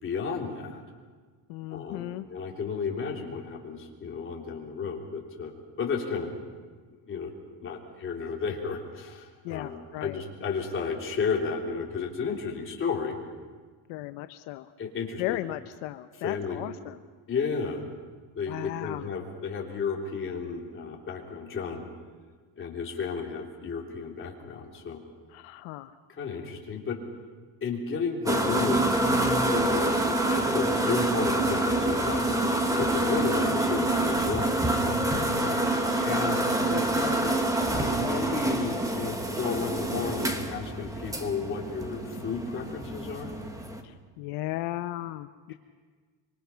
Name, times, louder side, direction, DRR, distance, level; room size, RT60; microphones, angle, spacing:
voice 1, 0.0-0.8 1.7-5.5 5.8-6.3 6.9-7.3 7.6-13.2 14.8-15.4 16.2-16.6 17.3-17.8 18.3-21.8 22.6-25.0 26.2-27.0 27.6-29.0 29.3-30.0 30.3-32.2 32.8-34.5 36.0-36.8 37.8-43.3 45.5-45.6, left 5 dB, 25° left, -1 dB, 3.4 m, -33 dB
voice 2, 1.5-2.3 9.4-10.2 13.9-14.7 15.2-17.0 18.5-19.1 25.3-25.9 35.1-35.6 36.6-37.4 43.8-45.5, left 16 dB, 80° left, 10 dB, 0.9 m, -36 dB
sound 1, 28.3-43.8, right 1 dB, 5° right, 1.3 m, -27 dB
25.5 x 24.5 x 5.8 m, 1.5 s
cardioid pair, 170°, 46 cm